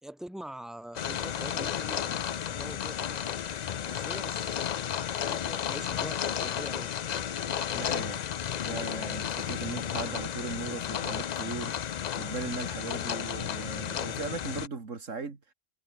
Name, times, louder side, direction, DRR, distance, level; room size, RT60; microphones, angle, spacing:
voice 1, 0.0-3.3 3.7-4.7 5.0-6.9, right 1 dB, ahead, 2.9 m, -44 dB
sound 1, 1.0-14.7, left 9 dB, 55° left, 0.5 m, -33 dB
voice 2, 7.7-8.2 8.6-15.4, right 4 dB, 80° right, 2.8 m, -38 dB
omnidirectional pair, 1.3 m